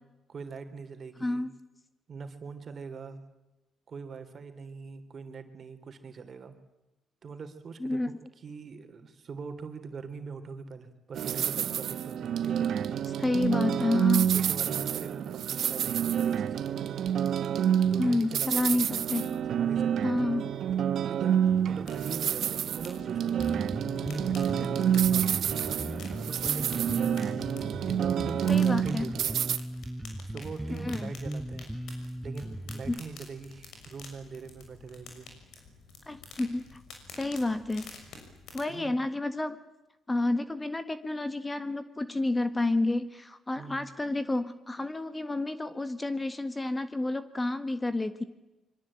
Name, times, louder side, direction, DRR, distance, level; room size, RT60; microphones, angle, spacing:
voice 1, 0.3-1.4 2.1-3.2 3.9-6.5 7.2-8.0 8.4-12.7 14.3-16.9 17.8-18.8 19.5-20.1 21.1-27.1 27.8-29.4 30.3-31.7 32.2-35.3 38.7-38.9 43.6-43.8, right 5 dB, 50° right, 8 dB, 3.3 m, -42 dB
voice 2, 1.2-1.5 7.8-8.1 13.2-14.3 18.0-19.4 20.0-20.5 26.9-27.0 28.5-29.1 30.7-31.1 32.9-33.0 36.1-36.8 37.2-37.9 38.5-39.6 40.1-48.2, left 2 dB, 15° left, 11 dB, 1.6 m, -30 dB
sound 1, 11.1-29.6, right 9 dB, 70° right, 1.1 m, -28 dB
sound 2, 21.7-38.6, left 4 dB, 75° left, 6.5 m, -50 dB
Bass guitar, 23.4-33.0, right 1 dB, 5° right, 0.8 m, -38 dB
25.5 x 24.0 x 8.9 m, 1.0 s
cardioid pair, 90°, 0 cm